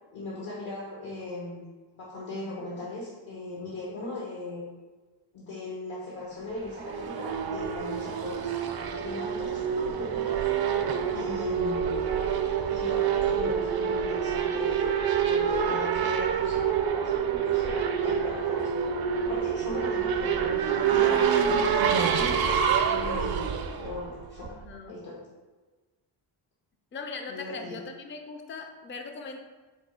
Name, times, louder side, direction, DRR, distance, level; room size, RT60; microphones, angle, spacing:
voice 1, 0.1-1.7 2.0-4.6 5.3-8.6 9.0-10.4 11.1-12.1 12.7-18.7 19.2-23.4 23.8-24.6 24.9-25.2 27.3-27.8, left 2 dB, 70° left, -6 dB, 1.1 m, -38 dB
Race car auto racing / Accelerating revving vroom, 6.5-24.7, right 7 dB, 50° right, 0.5 m, -27 dB
voice 2, 24.5-25.0 26.9-29.4, left 4 dB, 25° left, 4 dB, 0.4 m, -40 dB
4.5 x 2.3 x 4.8 m, 1.3 s
cardioid pair, 105°, 48 cm